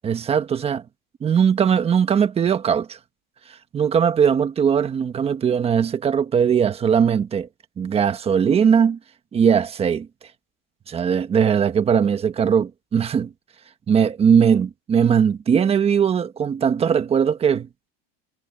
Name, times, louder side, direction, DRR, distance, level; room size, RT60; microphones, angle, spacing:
voice 1, 0.0-0.8 1.2-3.0 3.7-7.5 7.8-9.0 9.3-10.1 10.9-13.3 13.9-17.7, right 7 dB, 20° right, 1.3 m, -19 dB
supercardioid pair, 155°, 30 cm